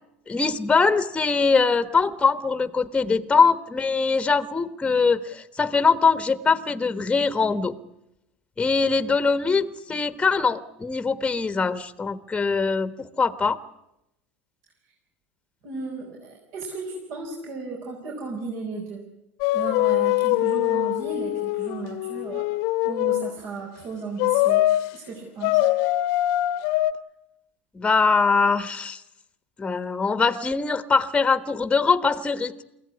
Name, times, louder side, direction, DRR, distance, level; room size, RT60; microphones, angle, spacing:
voice 1, 0.3-7.8 8.6-13.6 27.7-29.0 29.6-32.5, left 4 dB, 15° left, 13 dB, 1.3 m, -22 dB
voice 2, 15.6-19.0 19.5-22.5 22.8-24.6 24.9-25.6, right 4 dB, 60° right, 0 dB, 5.3 m, -34 dB
sound 1, 19.4-23.3 24.2-24.9 25.4-26.9, left 16 dB, 60° left, 1.1 m, -23 dB
24.0 x 16.0 x 9.7 m, 0.86 s
hypercardioid pair, 85°, 6 cm